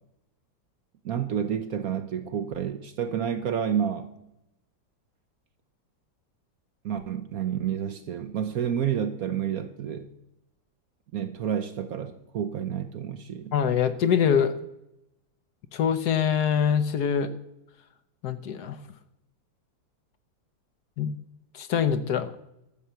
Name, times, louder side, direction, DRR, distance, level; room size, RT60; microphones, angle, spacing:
voice 1, 1.0-4.1 6.8-10.1 11.1-13.5, right 8 dB, 60° right, 1.0 m, -29 dB
voice 2, 13.5-14.5 15.7-17.3 18.2-18.8 21.0-21.1 21.5-22.3, left 8 dB, 65° left, 1.2 m, -24 dB
12.5 x 6.9 x 7.6 m
omnidirectional pair, 2.1 m